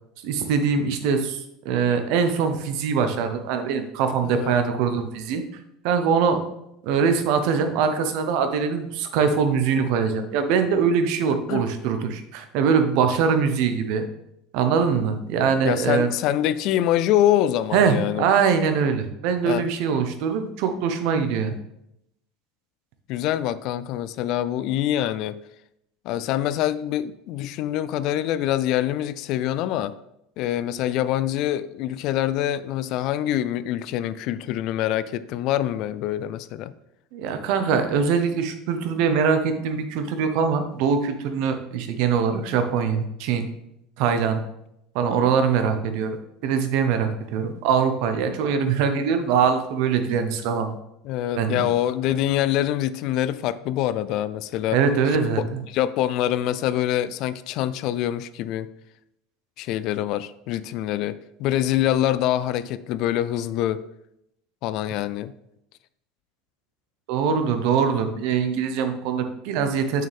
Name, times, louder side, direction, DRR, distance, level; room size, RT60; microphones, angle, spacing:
voice 1, 0.2-5.4 5.8-6.4 6.8-14.1 14.5-16.1 17.7-21.5 37.1-43.5 44.0-44.4 44.9-46.1 46.4-50.7 51.4-51.7 54.7-55.6 67.1-70.1, right 6 dB, 65° right, 8 dB, 0.9 m, -22 dB
voice 2, 4.2-4.6 11.5-11.6 15.6-18.2 19.4-19.7 23.1-25.4 26.1-29.9 30.4-36.7 51.0-54.8 55.4-58.7 59.6-63.8 64.6-65.3, left 12 dB, 55° left, 15 dB, 0.3 m, -25 dB
6.7 x 6.3 x 3.5 m, 0.81 s
cardioid pair, 150°, 0 cm